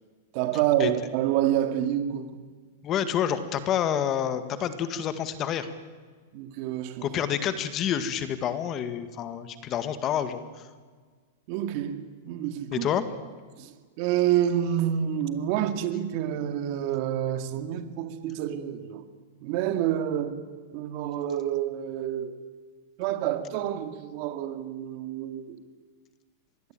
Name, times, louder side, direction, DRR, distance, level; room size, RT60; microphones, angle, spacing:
voice 1, 0.3-2.4 6.3-7.2 11.5-12.9 13.6-19.0 19.4-20.4 20.7-22.4 23.0-25.6, right 11 dB, 45° right, 9 dB, 2.3 m, -28 dB
voice 2, 2.8-5.7 7.0-10.4 12.7-13.0, left 9 dB, 25° left, 11 dB, 1.8 m, -28 dB
26.0 x 20.5 x 9.1 m, 1.5 s
supercardioid pair, 155°, 0 cm